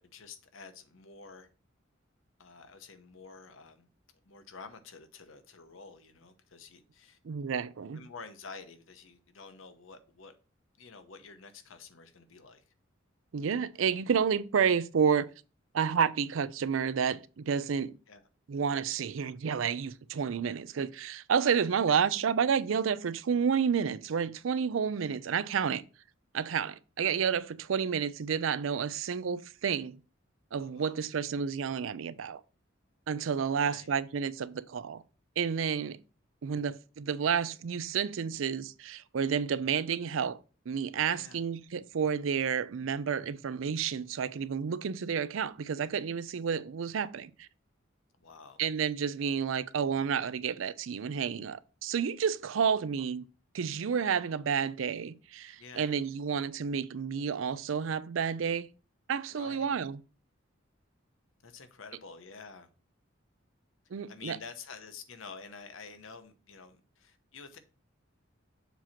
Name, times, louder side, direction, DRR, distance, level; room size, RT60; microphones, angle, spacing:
voice 1, 0.0-1.5 2.4-3.9 4.2-7.2 7.9-10.3 10.8-12.6 18.1-18.3 21.4-21.8 25.1-25.2 30.6-31.0 33.6-34.0 41.1-41.5 48.2-48.6 53.0-53.1 55.6-55.9 59.3-59.9 61.4-62.7 64.1-67.6, left 5 dB, 80° left, 0.9 m, -49 dB
voice 2, 7.2-8.0 13.3-15.3 15.7-18.0 18.5-25.8 26.3-30.0 30.5-32.4 33.1-35.0 35.4-36.0 36.4-40.4 40.7-47.5 48.6-53.2 53.5-58.7 59.1-60.0 63.9-64.4, right 7 dB, 75° right, 0.4 m, -30 dB
7.1 x 2.9 x 5.8 m
head